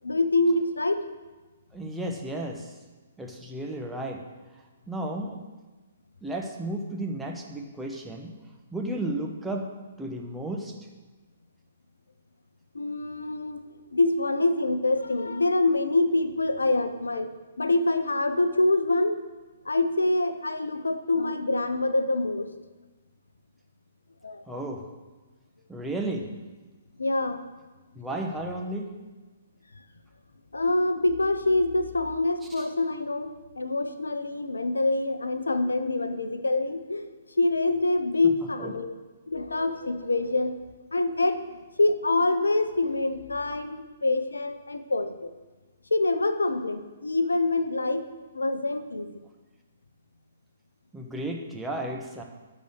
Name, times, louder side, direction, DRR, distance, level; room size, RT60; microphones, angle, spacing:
voice 1, 0.0-1.0 12.7-13.6 13.9-17.3 17.6-19.2 19.7-22.5 24.2-24.6 27.0-27.4 30.5-37.1 37.4-38.9 39.3-40.6 40.9-45.3 45.9-48.1 48.3-49.2, left 2 dB, 75° left, 10 dB, 0.7 m, -25 dB
voice 2, 1.7-2.8 3.2-4.2 4.9-5.4 6.2-8.3 8.7-9.7 10.0-10.8 24.5-24.8 25.7-26.3 27.9-28.9 32.6-32.7 38.6-38.7 50.9-52.2, right 1 dB, 5° right, 0 dB, 1.2 m, -33 dB
10.5 x 4.2 x 6.5 m, 1.2 s
figure-of-eight pair, 125°, 0 cm